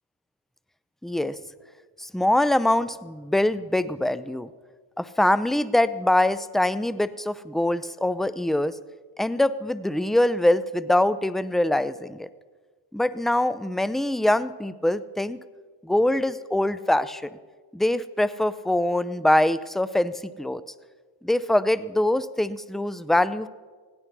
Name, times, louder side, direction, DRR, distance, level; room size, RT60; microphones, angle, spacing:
voice 1, 1.0-1.4 2.0-4.5 5.0-8.8 9.2-12.3 12.9-15.4 15.8-17.3 17.7-20.6 21.2-23.5, left 1 dB, ahead, 16 dB, 0.5 m, -23 dB
16.5 x 9.6 x 6.0 m, 1.4 s
supercardioid pair, 70°, 48 cm